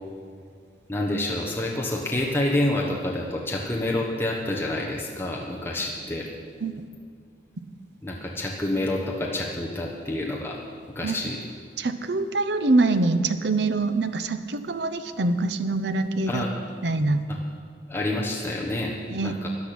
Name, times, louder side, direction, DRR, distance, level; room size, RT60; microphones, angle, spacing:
voice 1, 0.9-6.3 8.0-10.6 10.9-11.4 16.3-16.5 17.3-17.4 17.9-19.0 19.2-19.5, left 1 dB, 15° left, -3 dB, 1.2 m, -28 dB
voice 2, 11.8-16.5 16.8-17.2 19.1-19.3, right 2 dB, 70° right, 10 dB, 0.7 m, -24 dB
13.5 x 10.5 x 6.0 m, 2.1 s
head